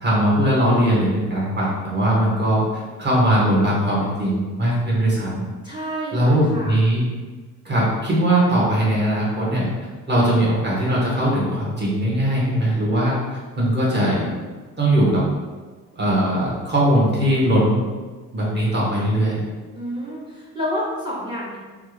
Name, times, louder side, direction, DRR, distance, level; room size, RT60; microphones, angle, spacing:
voice 1, 0.0-5.4 6.1-7.1 7.6-9.7 10.1-13.1 13.6-14.3 14.8-15.2 15.9-17.8 18.3-19.4, right 1 dB, 30° right, -7 dB, 1.5 m, -20 dB
voice 2, 5.6-6.8 19.7-21.6, equal, 15° right, -5 dB, 0.8 m, -29 dB
3.3 x 2.5 x 3.2 m, 1.3 s
cardioid pair, 90°, 33 cm